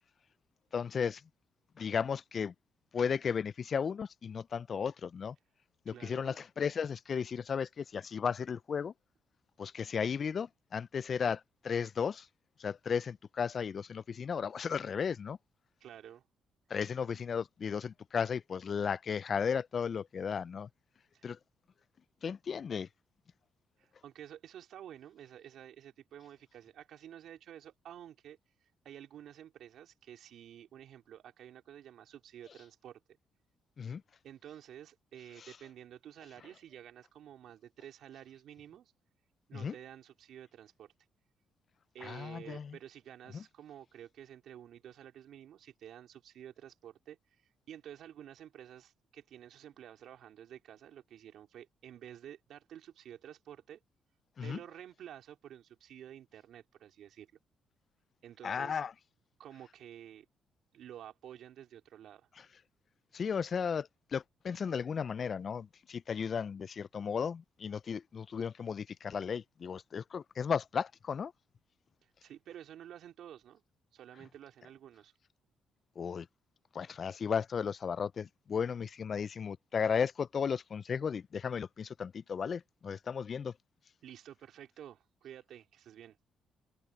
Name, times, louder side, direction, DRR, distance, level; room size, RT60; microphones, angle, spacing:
voice 1, 0.7-1.2 1.8-2.5 2.9-5.4 5.9-8.9 9.6-12.3 12.6-15.4 16.7-20.7 21.2-21.4 22.2-22.9 33.8-34.0 35.4-35.6 39.5-39.7 42.0-42.8 43.3-43.4 54.4-54.6 58.4-58.9 63.1-71.3 76.0-76.3 76.7-83.5, left 6 dB, 45° left, 0.4 m, -35 dB
voice 2, 5.9-6.4 15.8-16.2 21.1-21.3 23.8-28.4 28.8-33.0 34.2-38.9 39.5-40.9 41.9-53.8 54.4-57.3 58.2-58.8 59.4-60.3 60.7-62.3 72.0-73.6 73.9-75.1 84.0-86.2, right 10 dB, 75° right, 3.7 m, -51 dB
cardioid pair, 90°, 0 cm